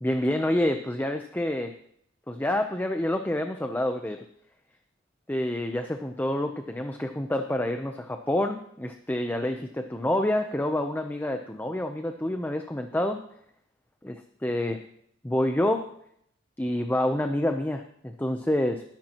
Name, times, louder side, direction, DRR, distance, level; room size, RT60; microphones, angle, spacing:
voice 1, 0.0-1.7 2.3-4.2 5.3-13.2 14.0-14.1 14.4-14.8 15.2-15.8 16.6-18.8, left 1 dB, 10° left, 5 dB, 0.7 m, -27 dB
20.0 x 10.5 x 3.0 m, 0.69 s
head